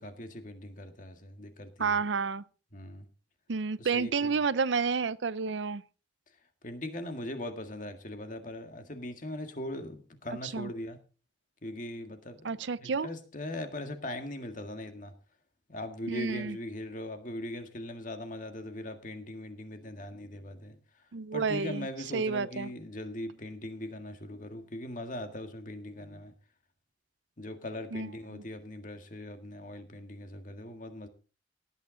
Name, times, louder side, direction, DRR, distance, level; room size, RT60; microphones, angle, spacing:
voice 1, 0.0-2.0 2.7-3.1 3.8-4.4 6.6-11.0 11.6-15.1 15.7-26.3 27.4-31.1, left 1 dB, 45° left, 1.8 m, -40 dB
voice 2, 1.8-2.4 3.5-5.8 10.5-10.7 12.4-13.1 16.1-16.6 21.1-21.9 22.1-22.7 27.9-28.1, right 5 dB, 85° right, 0.6 m, -30 dB
17.5 x 9.2 x 3.9 m
head